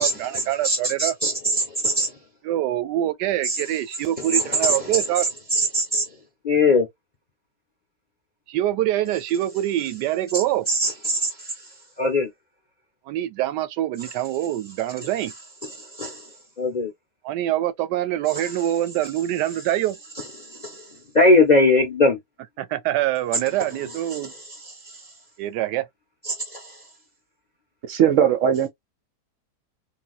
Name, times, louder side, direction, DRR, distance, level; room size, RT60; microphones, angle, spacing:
voice 1, 0.0-1.2 2.4-5.3 8.5-10.7 13.1-15.3 17.2-20.0 22.6-24.3 25.4-25.9, right 13 dB, 90° right, 1.2 m, -25 dB
voice 2, 0.6-1.3 1.8-2.1 3.5-3.6 4.3-4.4 5.5-6.0 6.4-6.9 10.7-11.3 12.0-12.3 16.0-16.1 16.6-16.9 21.1-22.2, left 2 dB, 45° left, 0.5 m, -19 dB
voice 3, 27.9-28.7, right 9 dB, 70° right, 0.8 m, -18 dB
3.8 x 2.3 x 2.3 m
omnidirectional pair, 1.8 m